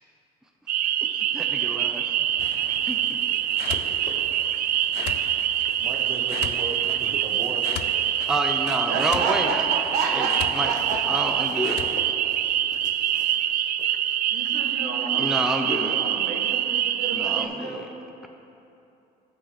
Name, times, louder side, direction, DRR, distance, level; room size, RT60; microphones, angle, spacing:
sound 1, 0.7-17.5, right 11 dB, 60° right, 0.4 m, -25 dB
voice 1, 1.0-2.0 2.7-3.0 8.3-9.6 10.1-10.7 11.0-11.8 15.2-16.0 17.1-17.9, right 1 dB, 5° right, 2 dB, 0.7 m, -29 dB
sound 2, 2.4-12.1, left 10 dB, 80° left, 0.5 m, -39 dB
voice 2, 2.5-3.4 8.9-11.5 14.3-15.3 15.7-17.9, right 4 dB, 80° right, 1 dB, 1.4 m, -31 dB
sound 3, 2.7-4.5 4.9-9.2 9.6-16.2, left 3 dB, 45° left, 1.0 m, -47 dB
voice 3, 5.8-8.7 17.4-17.5, right 2 dB, 30° right, 2 dB, 1.1 m, -38 dB
14.5 x 5.3 x 4.2 m, 2.7 s
cardioid pair, 110°, 17 cm